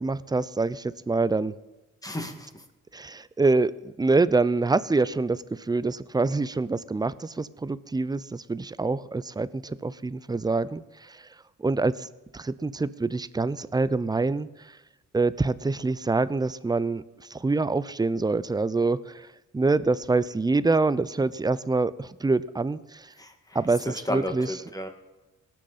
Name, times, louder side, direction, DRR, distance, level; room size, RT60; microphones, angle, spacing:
voice 1, 0.0-1.5 2.9-11.2 11.6-12.1 12.3-14.5 15.1-17.0 17.3-19.3 19.5-23.1 23.5-24.5, right 3 dB, 15° right, 17 dB, 0.5 m, -25 dB
voice 2, 2.0-2.6 23.2-24.9, left 1 dB, 10° left, 5 dB, 1.9 m, -34 dB
18.0 x 6.5 x 4.1 m, 1.1 s
supercardioid pair, 60°, 30 cm